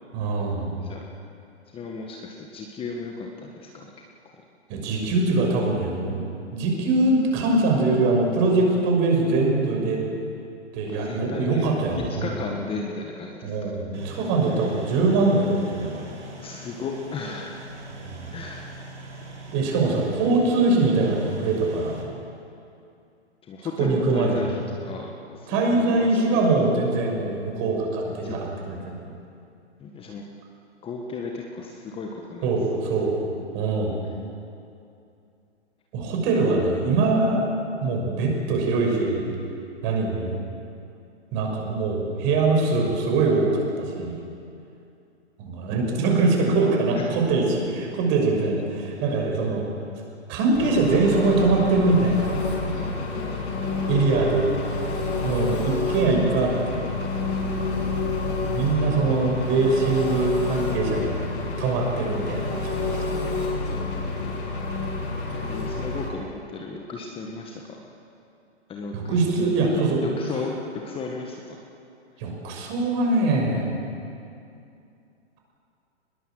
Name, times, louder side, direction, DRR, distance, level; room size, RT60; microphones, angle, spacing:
voice 1, 0.1-0.7 4.7-6.2 6.5-10.0 10.7-12.4 13.4-16.1 18.0-18.3 19.5-22.0 23.8-24.4 25.5-29.0 32.4-33.2 33.5-34.0 35.9-37.4 37.8-39.3 39.8-40.4 41.3-44.2 45.4-49.6 50.3-52.4 53.9-54.5 55.2-56.8 58.5-61.1 61.6-63.0 68.9-70.0 72.2-73.7, right 3 dB, 35° right, 0 dB, 6.3 m, -23 dB
voice 2, 1.7-3.9 10.9-11.6 12.2-13.7 16.4-17.6 18.3-18.7 23.5-24.6 24.8-26.5 28.0-28.4 29.8-30.2 30.8-32.5 36.1-36.6 46.9-47.2 53.2-53.8 65.3-67.6 68.7-69.5 69.7-71.4, left 4 dB, 15° left, 1 dB, 1.6 m, -35 dB
sound 1, 13.9-22.0, right 2 dB, 80° right, 6.2 m, -42 dB
Engine, 50.5-66.1, left 3 dB, 35° left, 6.8 m, -28 dB
23.5 x 21.0 x 7.8 m, 2.6 s
hypercardioid pair, 130°, 35 cm